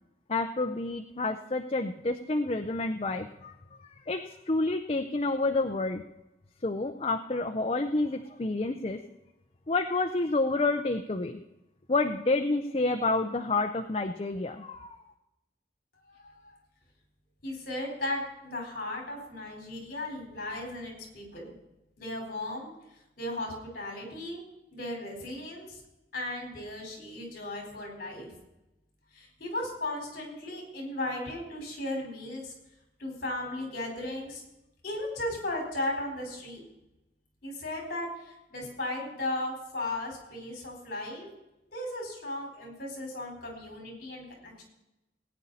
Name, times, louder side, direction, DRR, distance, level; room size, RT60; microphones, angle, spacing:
voice 1, 0.3-3.5 3.8-6.0 6.6-9.0 9.7-11.4 11.9-14.9, left 2 dB, 35° left, 6 dB, 0.6 m, -29 dB
voice 2, 17.4-21.5 22.0-22.7 23.2-24.4 24.7-25.8 26.1-28.3 29.1-32.5 33.0-34.4 34.8-36.6 37.4-41.3 41.7-44.6, left 1 dB, 50° left, 1 dB, 4.7 m, -36 dB
18.5 x 9.5 x 4.2 m, 0.93 s
head